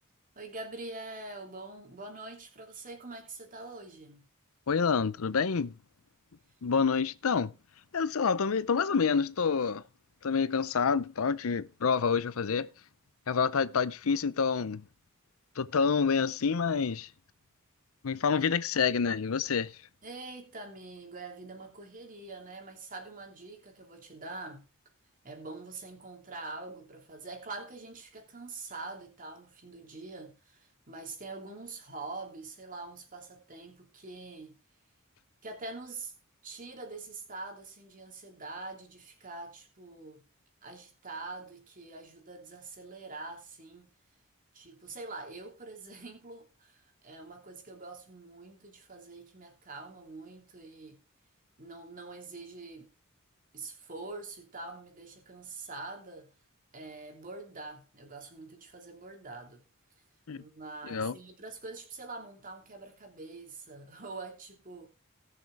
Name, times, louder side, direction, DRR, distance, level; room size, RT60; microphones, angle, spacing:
voice 1, 0.3-4.3 18.3-18.4 20.0-24.6 25.2-34.6 35.4-36.1 36.4-40.2 40.6-43.9 44.5-51.0 51.6-52.9 53.5-56.3 56.7-59.6 60.3-64.9, right 3 dB, 40° right, 3.0 m, -44 dB
voice 2, 4.7-5.7 6.6-7.5 7.9-9.8 10.2-12.7 13.3-14.8 15.6-17.1 18.0-19.7 60.3-60.4 60.9-61.1, left 5 dB, 70° left, 0.6 m, -28 dB
19.5 x 6.6 x 3.5 m
head